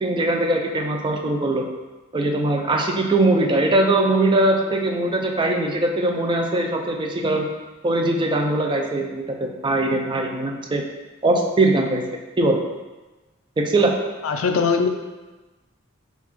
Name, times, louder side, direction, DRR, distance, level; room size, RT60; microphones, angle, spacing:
voice 1, 0.0-1.7 2.1-7.5 7.8-10.8 11.2-12.0 12.4-12.6 13.6-13.9, right 2 dB, 25° right, 2 dB, 0.4 m, -21 dB
voice 2, 14.2-14.9, left 5 dB, 70° left, 5 dB, 0.4 m, -20 dB
5.6 x 2.4 x 3.0 m, 1.2 s
head